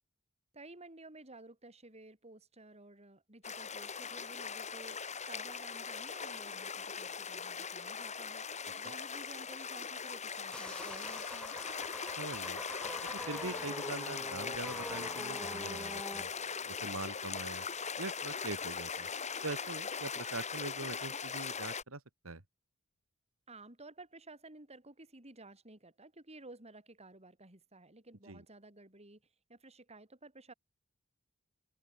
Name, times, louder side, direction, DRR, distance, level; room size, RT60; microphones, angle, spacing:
voice 1, 0.5-11.6 23.5-29.2 29.5-30.5, right 2 dB, 30° right, 5.3 m, -54 dB
sound 1, 3.4-21.8, left 6 dB, 35° left, 3.4 m, -40 dB
sound 2, 10.5-16.2, left 1 dB, 5° left, 1.8 m, -44 dB
voice 2, 12.2-12.6 13.0-16.3 16.7-17.6 18.0-19.1 19.4-22.4 28.3-28.4, right 2 dB, 75° right, 2.7 m, -43 dB
head